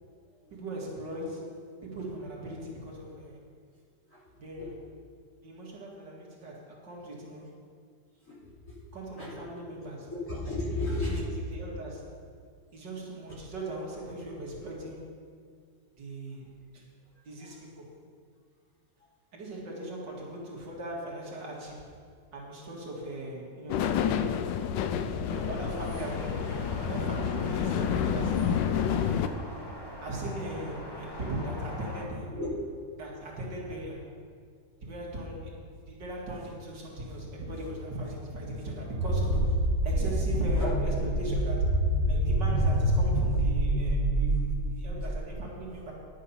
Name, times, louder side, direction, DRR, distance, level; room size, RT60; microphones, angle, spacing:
voice 1, 0.5-3.4 4.4-4.8 5.4-7.5 8.9-10.1 11.0-12.2 12.7-15.2 16.0-16.5 16.7-16.8 17.2-17.9 19.3-21.9 22.3-24.0 25.2-28.6 30.0-32.3 33.0-34.2 34.8-45.9, right 1 dB, 70° right, -3 dB, 2.5 m, -39 dB
voice 2, 8.3-8.7 9.2-9.5 10.1-11.2 17.4-17.5 32.3-32.5 40.5-40.7, left 2 dB, 40° left, -8 dB, 3.9 m, -34 dB
sound 1, 23.7-29.3, left 8 dB, 80° left, 1.3 m, -29 dB
sound 2, 25.3-32.1, equal, 15° left, 1.0 m, -43 dB
sound 3, 39.0-45.2, right 1 dB, 85° right, 2.0 m, -26 dB
10.5 x 8.8 x 5.6 m, 2.1 s
omnidirectional pair, 2.0 m